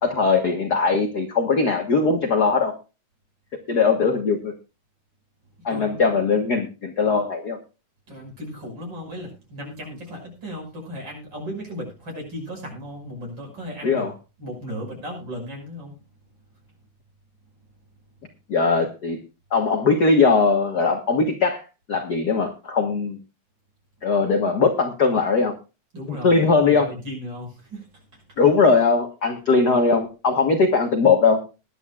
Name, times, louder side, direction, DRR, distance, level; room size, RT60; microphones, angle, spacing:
voice 1, 0.0-2.7 3.7-4.5 5.6-7.6 13.8-14.1 18.5-19.2 19.5-21.6 21.9-23.2 24.0-25.5 26.1-26.9 28.4-31.4, left 4 dB, 50° left, 5 dB, 1.2 m, -20 dB
voice 2, 5.7-6.3 8.1-14.1 14.4-15.9 25.9-27.9 28.1-28.4, equal, 35° right, 0 dB, 6.6 m, -36 dB
21.0 x 10.5 x 2.4 m, 0.30 s
omnidirectional pair, 3.5 m